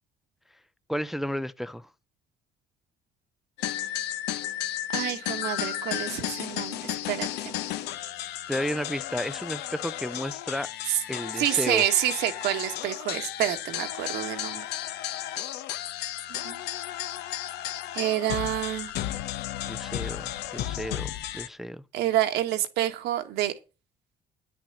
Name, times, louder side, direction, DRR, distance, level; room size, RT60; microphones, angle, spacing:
voice 1, 0.9-1.9 8.5-10.7 11.1-11.8 19.6-21.8, equal, ahead, 0.5 m, -32 dB
sound 1, 3.6-21.5, left 12 dB, 85° left, 0.9 m, -33 dB
voice 2, 4.9-7.6 10.9-11.0 11.4-14.6 16.3-16.6 17.9-18.9 21.9-23.5, right 12 dB, 85° right, 1.6 m, -28 dB
10.0 x 6.1 x 7.3 m
cardioid pair, 110°, 17 cm